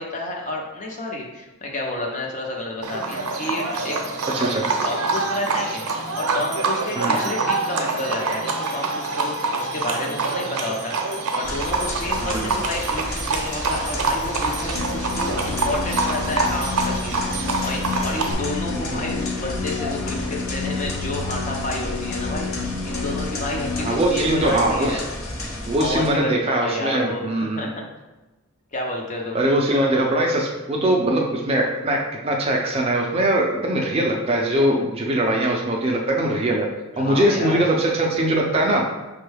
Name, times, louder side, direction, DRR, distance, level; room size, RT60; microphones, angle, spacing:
voice 1, 0.0-4.0 4.8-25.0 25.4-25.5 25.8-27.3 27.5-27.8 28.7-29.4 36.9-37.7, left 2 dB, 35° left, 0 dB, 0.6 m, -30 dB
Livestock farm animals working animals, 2.8-18.3, right 3 dB, 80° right, 0.6 m, -26 dB
voice 2, 4.3-4.7 7.0-7.2 12.2-12.5 16.5-16.6 18.9-19.0 23.8-25.0 25.7-27.7 29.3-36.7 37.0-38.8, right 1 dB, 25° right, 0 dB, 0.4 m, -21 dB
sound 1, 11.4-26.1, left 1 dB, 65° left, 0.8 m, -32 dB
sound 2, 14.7-24.0, left 4 dB, 85° left, 0.4 m, -30 dB
5.2 x 2.2 x 3.3 m, 1.1 s
head